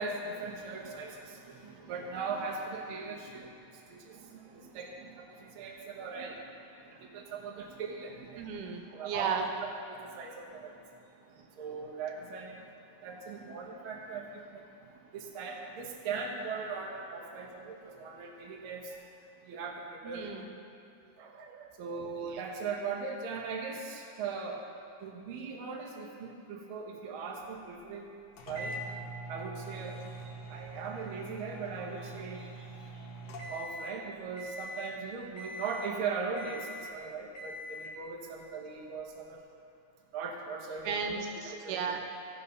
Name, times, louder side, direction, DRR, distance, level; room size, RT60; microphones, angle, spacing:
voice 1, 0.0-11.0 11.3-12.7 13.0-19.0 19.4-20.3 21.8-24.6 25.0-28.1 28.5-28.8 29.3-30.2 30.5-33.1 33.5-39.4 40.1-41.0 41.6-42.0, right 4 dB, 60° right, 0 dB, 1.5 m, -39 dB
voice 2, 8.4-9.5 17.4-17.7 20.0-20.5 21.2-21.7 22.2-22.4 32.8-32.9 40.8-42.0, right 6 dB, 85° right, 3 dB, 2.4 m, -36 dB
sound 1, 28.4-34.0 34.4-35.0 35.4-36.0 36.4-37.0 37.4-38.0, right 1 dB, 60° left, 2.0 m, -43 dB
15.5 x 5.4 x 5.5 m, 2.5 s
omnidirectional pair, 3.6 m